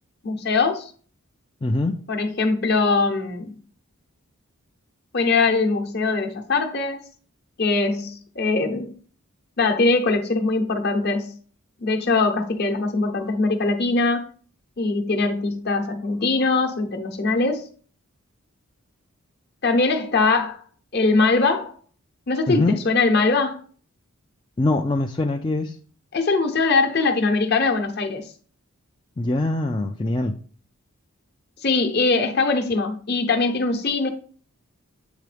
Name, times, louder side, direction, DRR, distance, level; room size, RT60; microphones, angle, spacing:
voice 1, 0.2-0.9 2.1-3.6 5.1-7.0 7.6-8.9 9.6-11.3 11.8-14.2 14.8-17.6 19.6-20.6 20.9-21.7 22.3-23.6 26.1-28.3 31.6-34.1, left 3 dB, 45° left, 0.9 m, -21 dB
voice 2, 1.6-2.0 22.5-22.8 24.6-25.8 29.2-30.3, left 2 dB, 20° left, 0.3 m, -23 dB
8.2 x 3.8 x 3.3 m
head